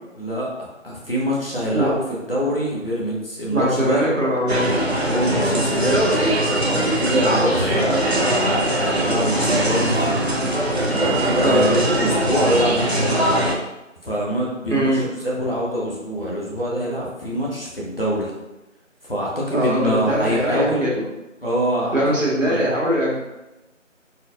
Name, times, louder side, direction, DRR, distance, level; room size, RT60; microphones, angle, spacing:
voice 1, 0.1-4.1 5.1-6.3 6.6-10.3 10.9-13.4 14.0-18.3 19.0-20.8 21.4-22.7, equal, 45° left, -5 dB, 1.1 m, -25 dB
voice 2, 3.5-4.7 11.4-11.8 14.7-15.1 19.5-21.0 21.9-23.2, equal, 80° right, -4 dB, 1.5 m, -21 dB
sound 1, 4.5-13.6, right 1 dB, 55° right, 0.6 m, -21 dB
4.4 x 3.5 x 2.4 m, 0.99 s
figure-of-eight pair, 175°, 39 cm